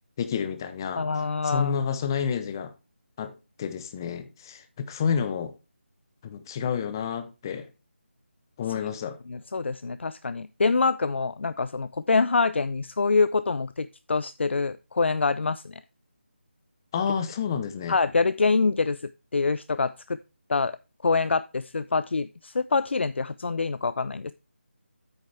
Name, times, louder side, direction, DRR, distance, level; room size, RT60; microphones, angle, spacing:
voice 1, 0.2-1.1 1.4-2.7 3.2-3.3 3.6-5.5 6.2-7.7 8.6-9.2 16.9-17.9, left 7 dB, 20° left, 0.7 m, -29 dB
voice 2, 1.0-1.8 8.7-8.8 9.3-15.8 17.9-20.2 20.5-20.7 21.0-24.3, left 4 dB, 70° left, 0.4 m, -25 dB
8.6 x 6.5 x 3.3 m
figure-of-eight pair, 165°, 7 cm